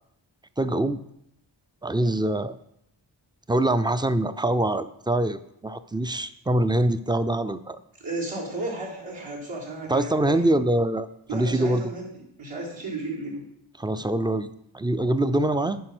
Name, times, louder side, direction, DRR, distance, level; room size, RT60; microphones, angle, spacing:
voice 1, 0.6-1.0 1.8-2.6 3.5-7.8 9.9-11.9 13.8-14.5 14.7-15.8, right 1 dB, 10° right, 12 dB, 0.4 m, -24 dB
voice 2, 8.0-10.4 11.3-12.1 12.4-13.5, right 2 dB, 70° right, -6 dB, 3.6 m, -33 dB
10.0 x 4.9 x 6.1 m, 0.77 s
wide cardioid pair, 70°, 48 cm